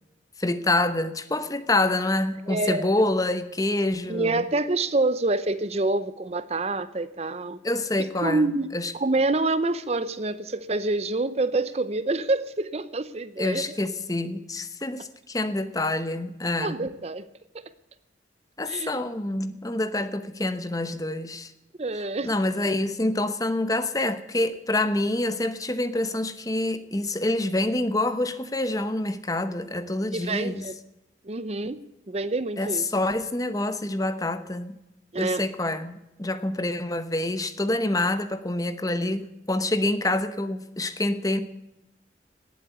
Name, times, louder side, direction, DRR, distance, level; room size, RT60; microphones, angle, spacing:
voice 1, 0.4-4.4 7.6-8.9 13.4-16.8 18.6-21.5 22.2-30.7 32.6-34.8 35.2-41.4, left 2 dB, 20° left, 11 dB, 0.9 m, -27 dB
voice 2, 2.5-2.9 4.1-7.6 8.0-13.6 16.6-17.3 18.7-19.0 21.8-22.3 30.1-30.7 31.2-32.8 35.1-35.5, right 2 dB, 35° right, 14 dB, 0.7 m, -27 dB
18.5 x 8.4 x 8.2 m, 0.92 s
head